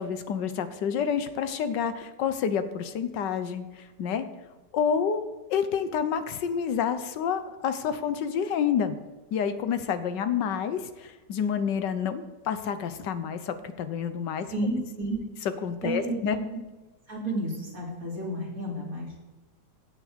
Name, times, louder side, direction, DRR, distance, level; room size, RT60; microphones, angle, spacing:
voice 1, 0.0-4.3 4.7-5.2 5.5-9.0 9.3-14.5 15.6-16.4, left 7 dB, 85° left, 10 dB, 1.5 m, -28 dB
voice 2, 14.5-15.2 15.8-16.4 17.1-19.2, right 1 dB, 55° right, -4 dB, 3.7 m, -31 dB
16.0 x 6.6 x 5.1 m, 1.2 s
omnidirectional pair, 1.8 m